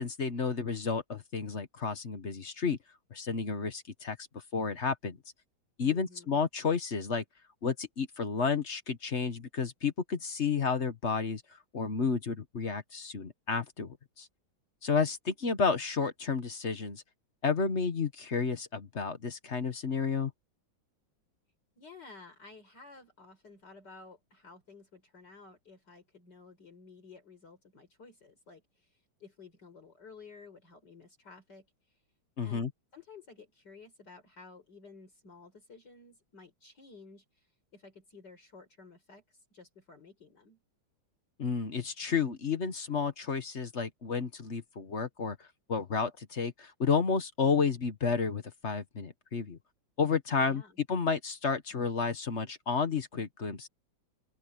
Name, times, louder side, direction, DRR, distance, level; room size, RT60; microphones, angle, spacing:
voice 1, 0.0-2.8 3.1-4.2 4.5-5.2 5.8-7.2 7.6-11.4 11.7-14.3 14.8-17.0 17.4-20.3 32.4-32.7 41.4-45.4 45.7-49.6 50.0-50.6 50.9-53.7, left 5 dB, 40° left, 1.4 m, -31 dB
voice 2, 5.8-6.4 21.8-32.0 32.4-32.7 32.9-40.6 50.5-50.8, left 4 dB, 55° left, 5.4 m, -54 dB
open air
omnidirectional pair, 2.2 m